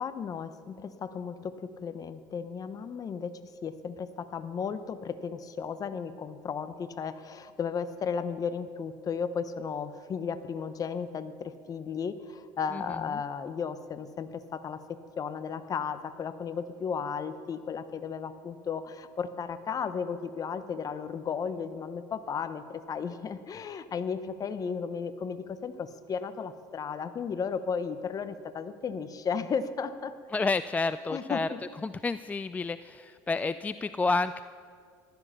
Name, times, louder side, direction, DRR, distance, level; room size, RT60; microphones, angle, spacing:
voice 1, 0.0-30.1 31.1-31.6, left 6 dB, 35° left, 12 dB, 0.9 m, -34 dB
voice 2, 30.3-31.5 31.8-34.4, left 3 dB, 15° left, 13 dB, 0.3 m, -30 dB
15.0 x 12.5 x 5.8 m, 2.2 s
supercardioid pair, 95°, 10 cm